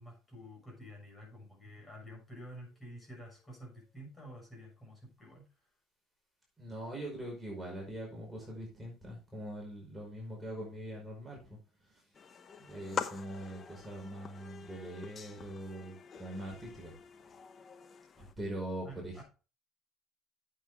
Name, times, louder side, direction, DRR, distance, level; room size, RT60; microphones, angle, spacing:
voice 1, 0.0-5.5 18.8-19.2, equal, 15° left, -1 dB, 6.3 m, -50 dB
voice 2, 6.6-11.6 11.9-12.0 12.6-16.9 18.2-19.2, right 1 dB, 10° right, -2 dB, 5.2 m, -42 dB
sound 1, 12.1-18.3, left 6 dB, 35° left, 1.0 m, -45 dB
9.1 x 8.2 x 3.6 m, 0.33 s
cardioid pair, 105°, 0 cm